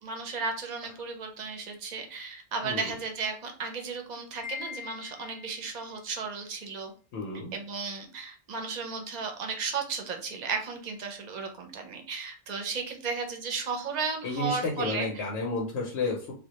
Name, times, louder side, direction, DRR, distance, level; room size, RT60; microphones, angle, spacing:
voice 1, 0.0-6.9 7.5-15.1, right 4 dB, 50° right, 4 dB, 0.5 m, -34 dB
voice 2, 2.6-2.9 7.1-7.5 14.2-16.3, left 3 dB, 85° left, 0 dB, 0.9 m, -31 dB
Wind chime, 4.4-5.8, left 7 dB, ahead, 0.7 m, -42 dB
2.2 x 2.1 x 2.8 m, 0.39 s
omnidirectional pair, 1.1 m